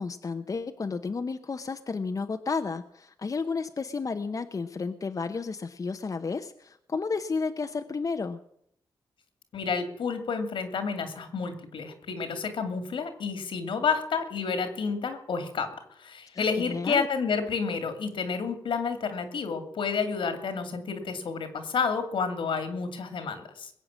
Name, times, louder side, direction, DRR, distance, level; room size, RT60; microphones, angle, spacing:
voice 1, 0.0-8.4 16.3-17.1, left 4 dB, 45° left, 7 dB, 0.8 m, -32 dB
voice 2, 9.5-15.7 16.0-23.7, left 5 dB, 80° left, 9 dB, 2.4 m, -30 dB
21.0 x 8.0 x 7.4 m, 0.71 s
cardioid pair, 80°, 8 cm